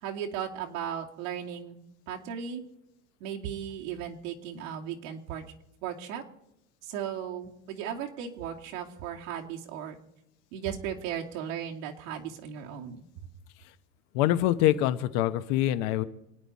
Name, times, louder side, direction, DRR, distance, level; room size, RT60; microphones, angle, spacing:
voice 1, 0.0-1.8 2.1-2.6 3.2-5.4 5.8-6.2 6.8-10.0 10.5-13.0, right 9 dB, 70° right, 1 dB, 2.5 m, -36 dB
voice 2, 14.1-16.0, left 13 dB, 55° left, 11 dB, 1.1 m, -25 dB
27.5 x 9.3 x 4.2 m, 0.84 s
supercardioid pair, 145°, 41 cm